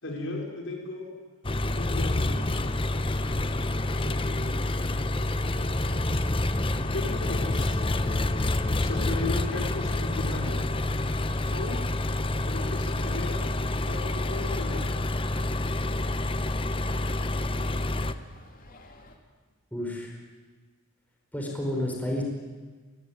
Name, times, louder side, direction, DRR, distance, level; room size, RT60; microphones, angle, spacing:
voice 1, 0.0-1.1 1.7-2.5 3.9-4.2 4.6-6.2 6.9-7.8 8.8-10.6 11.5-11.8 12.4-14.9, left 2 dB, 55° left, 1 dB, 4.8 m, -36 dB
Engine, 1.4-18.1, left 2 dB, 25° left, 0.9 m, -28 dB
sound 1, 11.0-19.2, left 1 dB, 40° left, 2.9 m, -50 dB
voice 2, 19.7-20.2 21.3-22.2, left 1 dB, 5° left, 0 dB, 4.8 m, -30 dB
25.0 x 19.0 x 9.6 m, 1.4 s
head